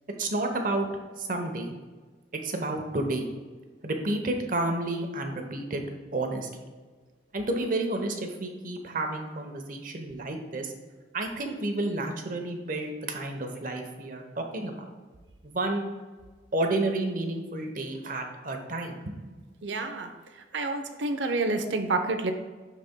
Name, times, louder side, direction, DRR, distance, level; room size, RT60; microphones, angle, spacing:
voice 1, 0.2-0.9 1.2-1.7 2.4-3.3 3.8-5.8 6.1-6.7 7.3-10.7 11.1-14.7 15.4-15.9 16.5-19.0 19.3-19.4, right 2 dB, 50° right, 4 dB, 0.9 m, -30 dB
voice 2, 19.6-20.1 20.5-22.3, right 3 dB, 85° right, 7 dB, 0.7 m, -28 dB
12.0 x 4.2 x 2.2 m, 1.4 s
head